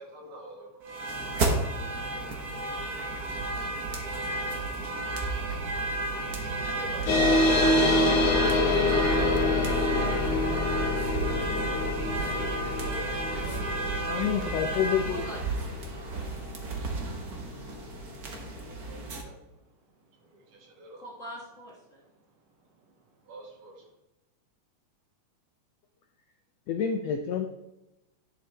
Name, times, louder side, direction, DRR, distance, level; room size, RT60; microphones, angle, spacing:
voice 1, 0.0-8.1 15.9-21.0 22.2-23.9, right 2 dB, 85° right, -1 dB, 3.6 m, -51 dB
sound 1, 0.8-19.2, right 2 dB, 60° right, 0.9 m, -32 dB
sound 2, 7.1-18.0, left 2 dB, 60° left, 2.0 m, -26 dB
voice 2, 8.0-9.4 15.0-15.6 16.1-16.2 21.0-22.0, equal, 40° left, -3 dB, 1.2 m, -43 dB
voice 3, 14.1-15.2 26.7-27.5, left 8 dB, 80° left, 4 dB, 1.5 m, -28 dB
11.0 x 6.9 x 3.3 m, 0.93 s
omnidirectional pair, 3.7 m